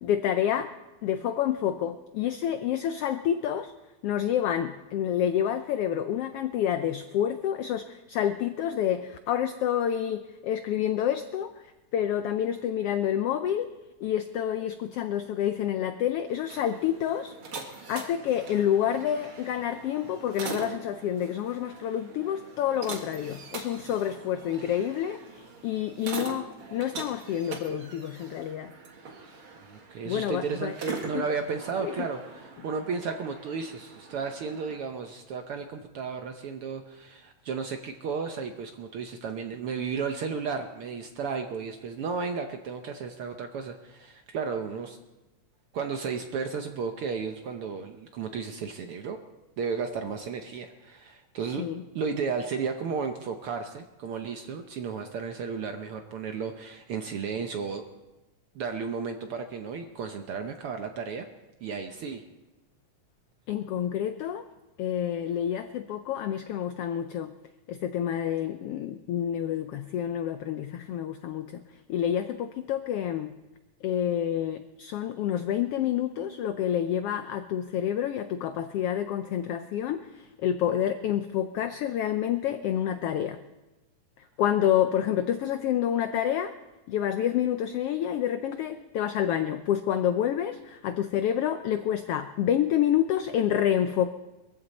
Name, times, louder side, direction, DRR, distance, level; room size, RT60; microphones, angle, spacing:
voice 1, 0.0-0.7 1.0-3.7 4.0-11.5 11.9-13.7 14.0-17.3 17.9-28.7 30.1-30.7 31.1-31.2 31.8-31.9 51.6-51.8 63.5-64.4 64.8-67.3 67.7-71.6 71.9-73.3 73.8-83.4 84.4-86.5 86.9-94.1, left 10 dB, 80° left, 9 dB, 1.3 m, -28 dB
heavy old door opening and closing in coffee shop, 16.3-34.8, right 4 dB, 50° right, 2.3 m, -42 dB
voice 2, 29.7-45.0 45.7-49.2 49.6-51.7 51.9-57.8 58.5-61.3 61.6-62.2, right 5 dB, 70° right, 5 dB, 1.4 m, -33 dB
22.5 x 15.0 x 4.2 m, 1.1 s
omnidirectional pair, 3.4 m